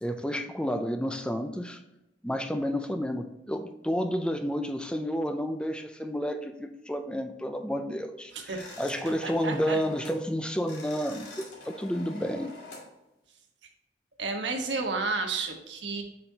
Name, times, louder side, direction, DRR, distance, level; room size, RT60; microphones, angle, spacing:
voice 1, 0.0-1.8 2.2-12.5, equal, 5° left, 7 dB, 0.4 m, -31 dB
voice 2, 8.3-8.8 9.2-9.8 14.2-16.0, right 3 dB, 80° right, 3 dB, 1.2 m, -31 dB
sound 1, 8.6-10.2 10.5-12.9, left 2 dB, 80° left, 2.5 m, -46 dB
7.5 x 5.9 x 2.8 m, 0.92 s
head